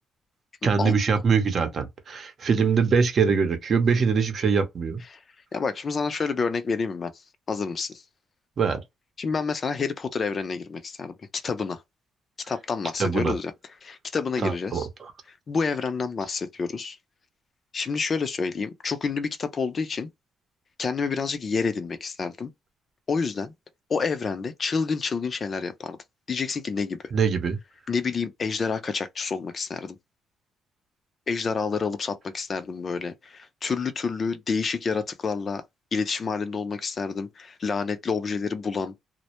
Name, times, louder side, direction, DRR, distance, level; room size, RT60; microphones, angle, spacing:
voice 1, 0.6-5.0 8.6-8.8 13.0-13.4 14.4-15.1 27.1-27.6, right 5 dB, 50° right, 0.7 m, -23 dB
voice 2, 5.5-7.1 7.5-8.0 9.2-11.8 12.5-13.5 13.8-14.9 15.5-17.0 17.7-20.1 20.8-22.5 23.1-23.5 23.9-26.0 26.3-27.0 27.9-30.0 31.3-35.6 35.9-38.9, left 5 dB, 40° left, 0.4 m, -28 dB
2.1 x 2.0 x 2.8 m
cardioid pair, 90°, 0 cm